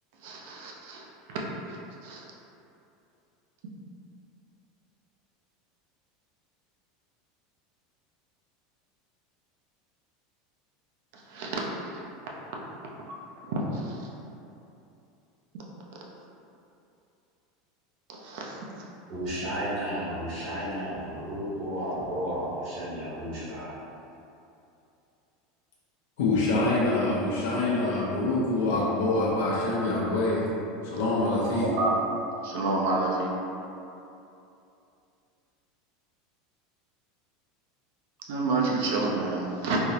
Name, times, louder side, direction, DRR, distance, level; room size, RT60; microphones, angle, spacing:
voice 1, 0.2-1.4 1.7-2.2 11.1-12.0 13.1-14.1 15.5-15.6 18.1-18.8 31.6-31.9 32.4-33.3 38.2-39.8, right 3 dB, 55° right, -2 dB, 0.5 m, -30 dB
voice 2, 19.1-23.7, equal, 40° right, -10 dB, 1.1 m, -33 dB
voice 3, 26.2-30.4 30.8-31.7, left 2 dB, 75° left, -6 dB, 0.5 m, -25 dB
3.7 x 2.0 x 2.8 m, 2.7 s
supercardioid pair, 180°, 0 cm